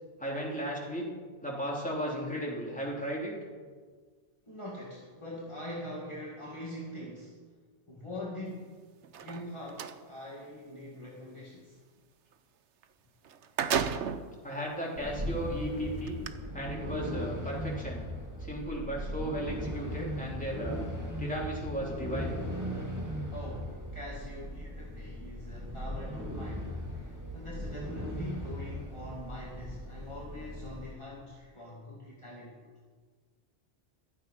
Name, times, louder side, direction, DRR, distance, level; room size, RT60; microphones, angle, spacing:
voice 1, 0.2-1.1 1.4-3.3 14.4-16.2 16.5-18.0 18.4-20.8 21.2-22.3, equal, 5° left, -4 dB, 3.5 m, -35 dB
voice 2, 4.5-7.4 7.9-8.8 9.1-11.8 23.3-32.7, left 1 dB, 25° left, -5 dB, 2.3 m, -43 dB
sound 1, 9.0-10.0 12.8-12.9 13.2-14.3 15.0-15.1 16.1-16.3, right 7 dB, 90° right, 1.1 m, -32 dB
sound 2, 14.9-30.9, equal, 15° right, 2.0 m, -38 dB
15.5 x 12.5 x 5.6 m, 1.5 s
omnidirectional pair, 1.2 m